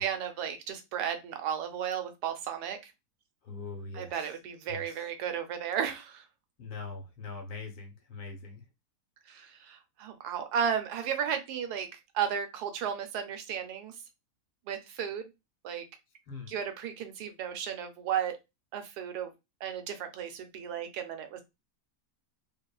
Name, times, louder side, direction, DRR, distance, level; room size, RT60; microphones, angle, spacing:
voice 1, 0.0-2.9 3.9-6.2 9.3-13.9 14.7-15.3 15.6-15.9 16.5-18.4 18.7-19.3 19.6-21.4, right 8 dB, 80° right, 1.1 m, -34 dB
voice 2, 3.4-4.3 4.7-5.0 6.6-8.6 16.3-16.5, left 4 dB, 75° left, 1.3 m, -42 dB
3.0 x 2.1 x 2.3 m
omnidirectional pair, 1.7 m